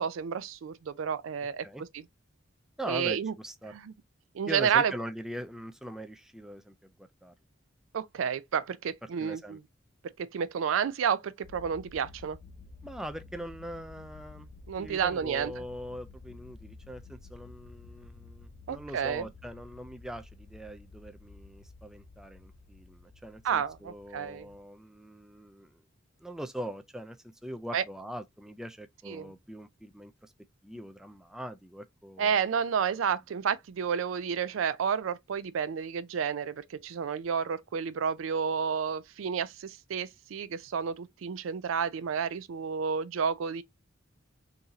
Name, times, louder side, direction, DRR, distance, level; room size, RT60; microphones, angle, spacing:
voice 1, 0.0-1.7 1.9-2.0 2.9-3.3 3.7-3.9 4.3-4.9 7.9-9.6 10.2-12.4 14.7-15.5 18.7-19.3 23.4-24.5 27.7-27.8 29.1-29.3 32.2-43.6, right 7 dB, 90° right, 0.4 m, -30 dB
voice 2, 2.8-3.8 4.5-7.3 9.2-9.6 12.8-14.5 14.8-25.7 26.2-30.3 30.6-32.3, equal, 5° right, 0.3 m, -42 dB
sound 1, 11.4-24.6, left 3 dB, 45° left, 0.6 m, -51 dB
3.9 x 2.6 x 2.8 m
head